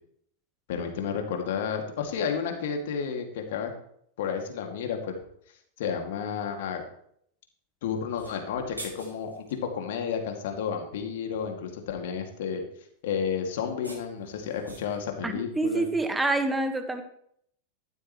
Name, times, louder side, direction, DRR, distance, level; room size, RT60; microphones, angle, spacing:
voice 1, 0.7-3.7 4.2-5.1 5.8-6.8 7.8-12.6 13.0-15.9, left 7 dB, 55° left, 4 dB, 2.4 m, -31 dB
sound 1, 8.0-9.6 13.6-15.1, right 1 dB, 85° right, 6.6 m, -45 dB
voice 2, 15.2-17.0, right 2 dB, 10° right, 7 dB, 1.6 m, -27 dB
14.5 x 12.0 x 3.2 m, 0.66 s
figure-of-eight pair, 90°, 0 cm